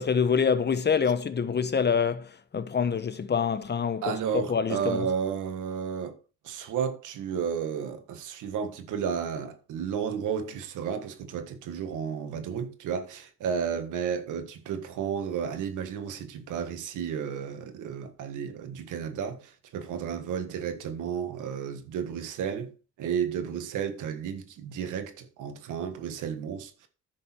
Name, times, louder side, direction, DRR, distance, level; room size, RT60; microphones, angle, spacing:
voice 1, 0.0-5.1, left 6 dB, 35° left, 1.0 m, -26 dB
voice 2, 4.0-6.2 6.4-26.9, right 7 dB, 85° right, 1.6 m, -32 dB
10.5 x 6.6 x 4.4 m
cardioid pair, 90°, 30 cm